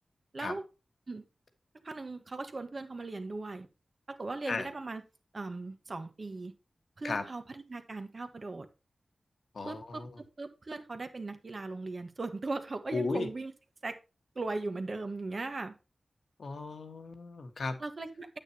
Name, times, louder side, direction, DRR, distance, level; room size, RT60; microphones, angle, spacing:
voice 1, 0.3-0.6 1.1-1.3 1.8-3.7 4.1-5.0 5.3-6.5 7.0-8.7 9.6-10.0 10.4-13.5 13.8-14.0 14.3-15.8 17.8-18.4, right 3 dB, 45° right, 1.3 m, -38 dB
voice 2, 9.5-10.1 12.9-13.3 16.4-17.8, left 3 dB, 75° left, 1.6 m, -35 dB
9.0 x 8.7 x 2.8 m
wide cardioid pair, 100°, 0 cm